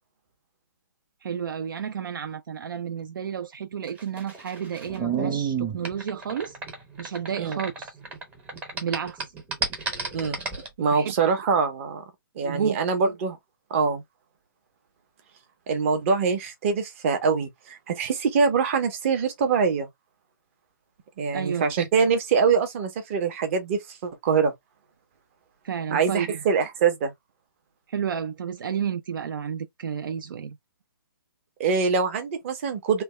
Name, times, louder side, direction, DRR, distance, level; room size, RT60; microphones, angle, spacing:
voice 1, 1.2-6.6 7.0-8.0 8.8-9.2 10.9-11.1 12.4-12.8 21.3-21.7 25.6-26.4 27.9-30.6, right 8 dB, 65° right, 0.4 m, -31 dB
sound 1, 3.9-8.2 8.5-10.7, right 5 dB, 10° right, 0.7 m, -30 dB
voice 2, 10.8-12.0 12.4-13.4 13.7-14.0 15.7-19.9 21.2-24.5 25.9-27.1 31.6-33.0, right 5 dB, 35° right, 0.9 m, -24 dB
3.3 x 2.2 x 3.1 m
hypercardioid pair, 150°, 12 cm